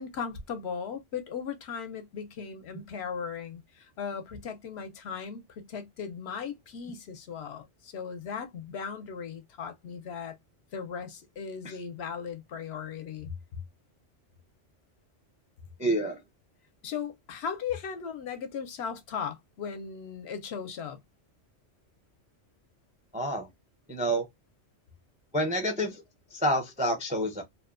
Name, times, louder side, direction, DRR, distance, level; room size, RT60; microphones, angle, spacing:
voice 1, 0.0-10.4 10.7-13.6 16.8-21.0, left 6 dB, 70° left, 0.8 m, -37 dB
voice 2, 15.8-16.2 23.1-23.5 23.9-24.2 25.3-26.0 26.3-27.4, equal, 10° right, 0.3 m, -28 dB
2.6 x 2.2 x 2.3 m
omnidirectional pair, 1.2 m